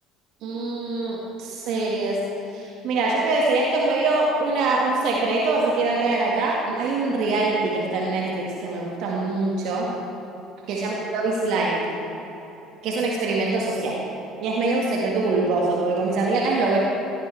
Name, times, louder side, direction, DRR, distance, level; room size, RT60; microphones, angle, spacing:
voice 1, 0.4-2.2 2.5-9.9 10.7-11.9 12.8-14.0 14.4-16.8, right 3 dB, 60° right, -2 dB, 1.8 m, -23 dB
17.5 x 15.0 x 3.4 m, 2.9 s
hypercardioid pair, 60°, 0 cm